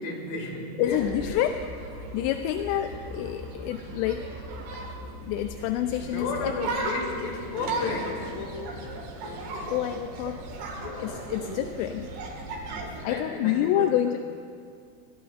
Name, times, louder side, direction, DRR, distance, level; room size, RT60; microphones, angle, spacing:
voice 1, 0.0-1.5 2.7-3.3 3.5-3.7 5.6-9.7 10.7-11.3 12.7-14.2, left 3 dB, 60° left, 0 dB, 3.8 m, -35 dB
voice 2, 0.8-1.6 1.9-4.3 4.8-6.5 9.7-10.4 11.0-12.1 13.0-14.2, left 11 dB, 85° left, 7 dB, 2.7 m, -28 dB
sound 1, 0.8-13.0, right 2 dB, 85° right, 4.2 m, -37 dB
24.0 x 19.5 x 2.5 m, 2.2 s
omnidirectional pair, 5.0 m